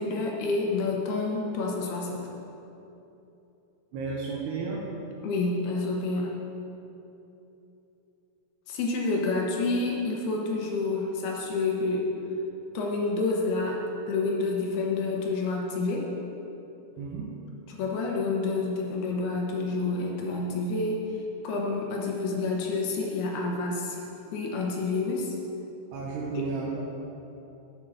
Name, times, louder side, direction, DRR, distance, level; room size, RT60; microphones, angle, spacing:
voice 1, 0.0-2.2 5.2-6.4 8.7-12.1 12.7-13.8 14.1-16.1 17.7-21.0 21.4-24.0 24.3-25.3 26.3-26.4, left 3 dB, 80° left, 0 dB, 3.1 m, -28 dB
voice 2, 3.9-4.9 17.0-17.3 25.9-26.8, right 4 dB, 85° right, -3 dB, 3.1 m, -33 dB
8.9 x 8.5 x 6.4 m, 2.9 s
omnidirectional pair, 4.5 m